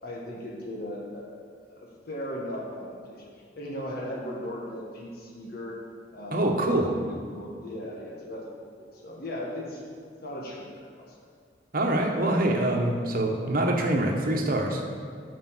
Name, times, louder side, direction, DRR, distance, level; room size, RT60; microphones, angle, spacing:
voice 1, 0.0-1.3 1.6-3.3 3.5-5.8 6.1-8.5 8.8-9.8 10.2-11.3, left 1 dB, 55° left, -3 dB, 1.4 m, -37 dB
voice 2, 6.3-6.9 11.7-14.8, right 1 dB, 50° right, 2 dB, 1.2 m, -25 dB
9.4 x 5.3 x 6.3 m, 2.1 s
head